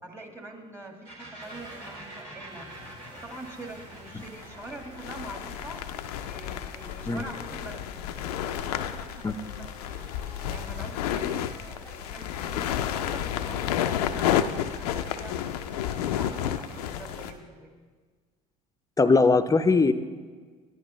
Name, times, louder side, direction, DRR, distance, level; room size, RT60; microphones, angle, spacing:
voice 1, 0.0-2.7 3.1-5.8 6.3-7.8 8.2-10.1 10.5-15.4 15.8-17.9, right 2 dB, 15° right, 2 dB, 1.8 m, -44 dB
sound 1, 1.0-8.6, right 1 dB, 80° right, 2.9 m, -47 dB
sound 2, 1.4-17.4, right 1 dB, 45° right, 3.4 m, -49 dB
sound 3, 3.3-3.4 4.2-17.3, left 10 dB, 80° left, 0.5 m, -31 dB
voice 2, 19.0-19.9, left 4 dB, 15° left, 10 dB, 0.6 m, -20 dB
14.0 x 10.5 x 3.1 m, 1.5 s
hypercardioid pair, 65°, 20 cm